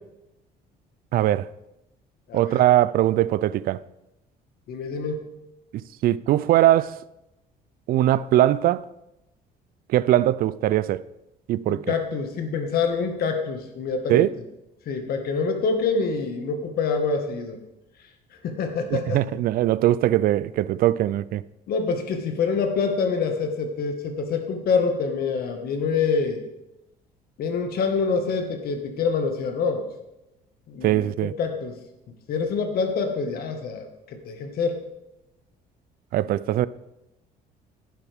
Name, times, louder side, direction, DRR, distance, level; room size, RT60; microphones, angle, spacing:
voice 1, 1.1-1.5 2.3-3.8 6.0-7.0 7.9-8.8 9.9-11.0 11.5-11.9 14.1-14.3 18.9-21.4 30.8-31.3 36.1-36.7, right 13 dB, 60° right, 0.4 m, -21 dB
voice 2, 2.3-2.6 4.7-5.2 11.7-14.3 14.8-17.6 18.4-19.2 21.7-26.4 27.4-29.8 30.7-31.7 32.3-34.8, left 5 dB, 65° left, 1.7 m, -26 dB
11.0 x 10.0 x 3.5 m
cardioid pair, 110°, 17 cm